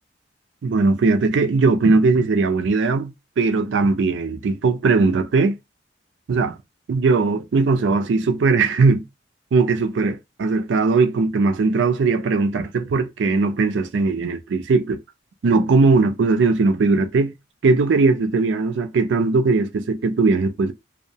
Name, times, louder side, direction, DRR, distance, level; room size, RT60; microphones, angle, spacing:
voice 1, 0.6-5.6 6.3-6.5 6.9-9.0 9.5-15.0 15.4-17.3 17.6-20.7, right 3 dB, 75° right, 0.4 m, -19 dB
2.6 x 2.1 x 2.7 m
head